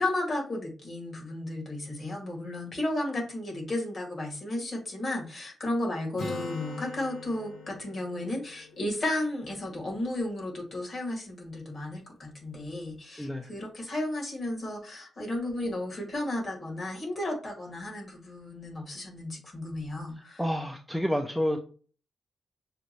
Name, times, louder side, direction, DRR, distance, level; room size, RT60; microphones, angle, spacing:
voice 1, 0.0-20.5, left 1 dB, 40° left, 0 dB, 2.1 m, -33 dB
Acoustic guitar, 6.2-9.9, left 3 dB, 70° left, 1.4 m, -41 dB
voice 2, 13.2-13.5 20.4-21.6, equal, 5° left, 3 dB, 0.5 m, -29 dB
6.4 x 2.6 x 3.0 m, 0.40 s
cardioid pair, 120°, 0 cm